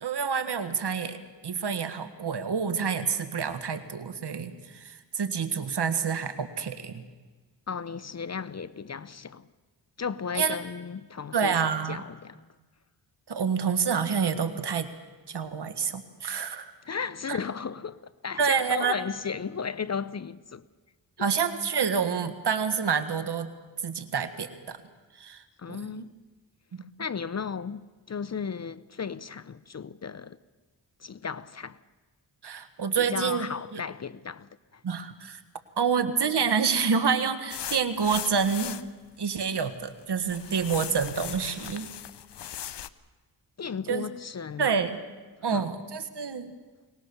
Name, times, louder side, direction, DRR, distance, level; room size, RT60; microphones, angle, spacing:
voice 1, 0.0-7.1 10.3-10.5 11.3-12.0 13.3-14.9 15.3-16.7 17.3-17.4 18.4-18.9 21.2-23.5 23.8-24.8 25.2-25.4 25.9-26.1 26.7-26.8 32.4-33.8 34.8-35.4 35.8-38.7 39.2-41.9 43.9-44.1 44.6-45.0 45.4-46.5, right 6 dB, 65° right, 1.7 m, -28 dB
voice 2, 7.7-9.5 10.0-11.6 11.9-12.4 16.9-20.6 21.2-21.3 25.6-26.1 27.0-30.4 31.0-31.8 33.0-34.8 43.6-44.7 45.5-45.7, left 6 dB, 35° left, 0.6 m, -35 dB
sound 1, 37.5-38.9 39.5-40.0 40.3-42.9, left 10 dB, 70° left, 0.8 m, -38 dB
23.5 x 19.0 x 7.0 m
cardioid pair, 65°, 44 cm